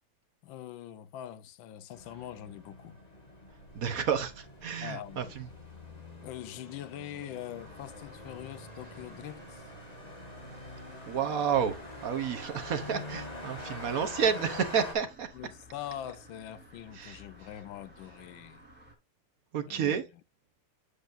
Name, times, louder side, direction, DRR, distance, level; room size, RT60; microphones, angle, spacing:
voice 1, 0.4-3.0 4.8-5.4 6.2-9.7 12.8-13.0 15.3-18.6 19.7-20.0, left 11 dB, 70° left, 1.3 m, -43 dB
sound 1, 1.9-14.9, left 1 dB, 20° left, 1.8 m, -45 dB
voice 2, 3.7-5.5 11.1-15.3 16.9-17.2 19.5-20.0, right 7 dB, 60° right, 1.0 m, -30 dB
sound 2, 7.5-18.9, left 1 dB, 5° right, 3.7 m, -54 dB
8.2 x 7.9 x 2.5 m
omnidirectional pair, 2.4 m